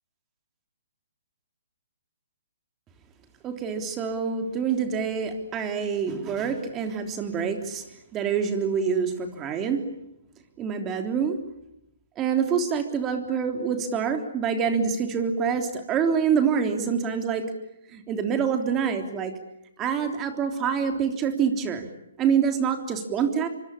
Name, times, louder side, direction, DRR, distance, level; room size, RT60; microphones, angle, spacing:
voice 1, 3.4-7.8 8.1-9.9 10.6-11.4 12.2-17.5 17.9-19.3 19.8-21.9 22.2-23.5, right 6 dB, 20° right, 6 dB, 3.4 m, -26 dB
26.5 x 24.5 x 8.6 m, 0.81 s
hypercardioid pair, 145°, 0 cm